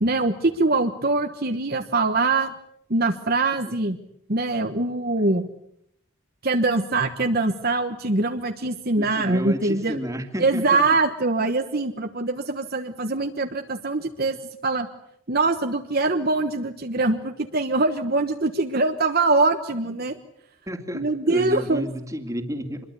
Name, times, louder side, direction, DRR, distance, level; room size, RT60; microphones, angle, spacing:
voice 1, 0.0-2.5 2.9-4.0 4.3-5.5 6.4-10.0 10.4-14.4 14.6-14.9 15.3-20.2 20.9-21.9, right 3 dB, 45° right, 6 dB, 1.3 m, -23 dB
voice 2, 9.0-10.8 20.7-22.8, equal, 15° right, 7 dB, 2.5 m, -31 dB
26.5 x 22.0 x 8.3 m, 0.74 s
head